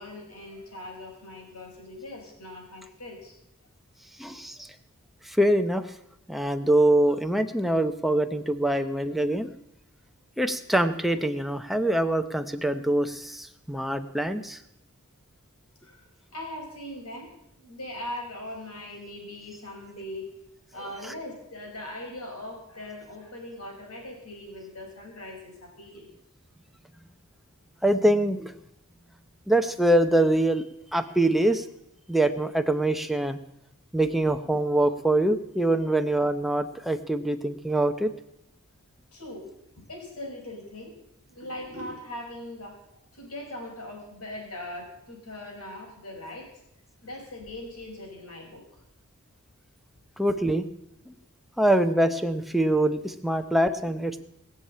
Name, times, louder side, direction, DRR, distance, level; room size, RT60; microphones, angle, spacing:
voice 1, 0.0-3.3 15.8-16.0 16.3-17.3 17.6-20.3 20.7-26.1 39.1-39.5 39.9-41.0 41.3-42.8 43.1-46.5 47.0-48.8 53.4-53.5, left 1 dB, 85° left, 1 dB, 5.3 m, -40 dB
voice 2, 4.2-4.7 5.2-5.9 6.3-9.5 10.4-14.6 21.0-21.1 27.8-28.5 29.5-30.7 30.9-31.7 32.1-33.4 33.9-38.1 50.2-50.7 51.1-51.2 51.6-54.2, right 1 dB, ahead, 7 dB, 0.8 m, -24 dB
19.5 x 7.4 x 8.6 m, 0.80 s
head